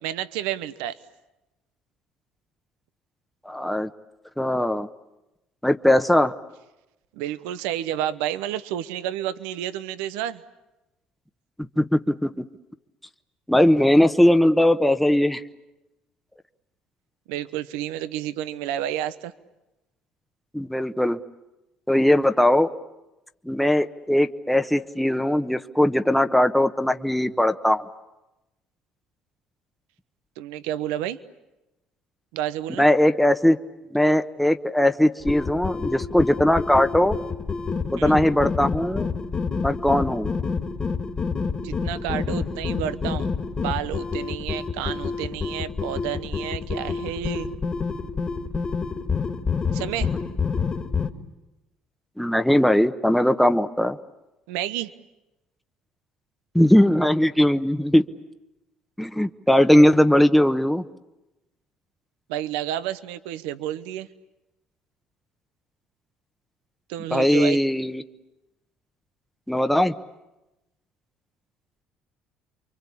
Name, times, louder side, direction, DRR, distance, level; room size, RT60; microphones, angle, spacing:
voice 1, 0.0-1.0 7.1-10.4 17.3-19.3 30.4-31.2 32.3-32.9 38.0-38.2 41.6-43.3 43.6-47.5 49.7-50.1 54.5-54.9 62.3-64.1 66.9-67.6, right 12 dB, 90° right, 13 dB, 1.0 m, -30 dB
voice 2, 3.4-3.9 4.4-4.9 5.6-6.3 11.8-12.3 13.5-15.4 20.5-21.2 21.9-22.7 23.5-27.8 32.8-33.6 33.9-37.2 37.9-39.1 39.6-40.3 52.2-54.0 56.5-58.0 59.0-60.8 67.1-68.0 69.5-69.9, left 1 dB, ahead, 8 dB, 1.1 m, -19 dB
sound 1, 35.2-51.1, left 5 dB, 35° left, 2.1 m, -28 dB
29.0 x 23.5 x 8.5 m, 0.98 s
supercardioid pair, 80°, 3 cm